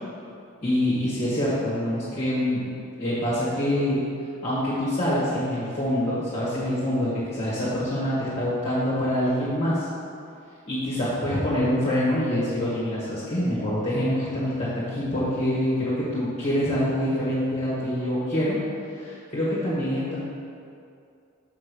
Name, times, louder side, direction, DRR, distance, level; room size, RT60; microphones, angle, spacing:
voice 1, 0.6-2.7 3.0-4.0 4.4-9.9 10.7-18.6 19.0-20.2, left 1 dB, 35° left, -10 dB, 1.8 m, -25 dB
5.8 x 5.5 x 6.9 m, 2.4 s
head